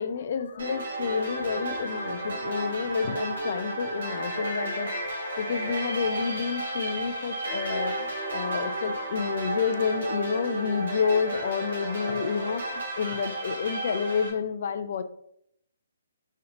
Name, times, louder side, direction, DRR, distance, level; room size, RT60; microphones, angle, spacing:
voice 1, 0.0-15.0, left 6 dB, 50° left, 10 dB, 0.3 m, -30 dB
sound 1, 0.6-14.3, right 1 dB, 60° right, 1.4 m, -32 dB
3.8 x 3.2 x 2.9 m, 0.71 s
figure-of-eight pair, 135°, 0 cm